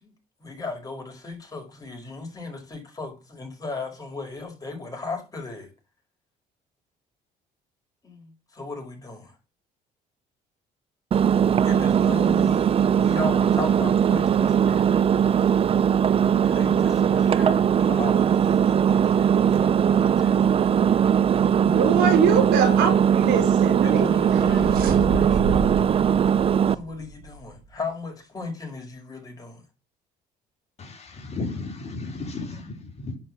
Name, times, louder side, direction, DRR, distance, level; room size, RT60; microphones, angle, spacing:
voice 1, 0.4-5.7 8.0-9.3 11.6-15.0 16.4-20.8 23.8-25.5 26.7-29.6 32.5-32.6, left 3 dB, 20° left, 5.3 m, -36 dB
Engine, 11.1-26.7, right 8 dB, 35° right, 0.5 m, -20 dB
voice 2, 21.6-24.4 24.8-24.9, right 6 dB, 90° right, 3.9 m, -23 dB
sound 1, 24.3-27.5, right 4 dB, 65° right, 4.0 m, -30 dB
voice 3, 30.8-33.2, left 3 dB, 40° left, 3.4 m, -34 dB
10.5 x 5.5 x 7.5 m
cardioid pair, 110°, 17 cm